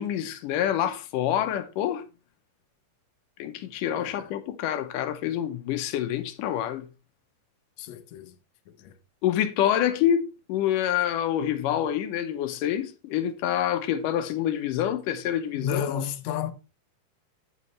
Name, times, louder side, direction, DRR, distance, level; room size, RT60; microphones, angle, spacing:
voice 1, 0.0-2.0 3.4-6.9 9.2-16.0, left 10 dB, 85° left, 2.4 m, -27 dB
voice 2, 7.8-8.3 8.8-8.9 15.5-16.5, left 8 dB, 65° left, 1.9 m, -32 dB
9.5 x 8.1 x 3.1 m
omnidirectional pair, 3.7 m